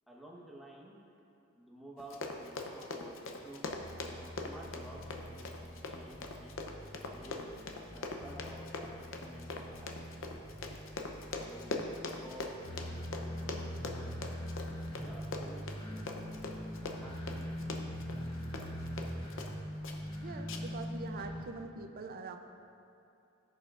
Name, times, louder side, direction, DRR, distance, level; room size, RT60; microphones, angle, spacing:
voice 1, 0.1-1.0 1.5-3.6 4.1-6.5 7.1-9.9 10.2-10.4 11.2-14.2 14.9-16.2 16.4-17.6 18.2-18.8, equal, ahead, -4 dB, 1.2 m, -53 dB
Run, 2.0-19.6 19.8-20.2 20.5-20.8 21.2-21.3, left 3 dB, 65° left, 0.7 m, -42 dB
sound 1, 3.8-21.4, equal, 25° left, 0.9 m, -43 dB
voice 2, 20.2-22.4, right 3 dB, 45° right, 6 dB, 0.5 m, -44 dB
15.5 x 7.0 x 2.5 m, 2.6 s
head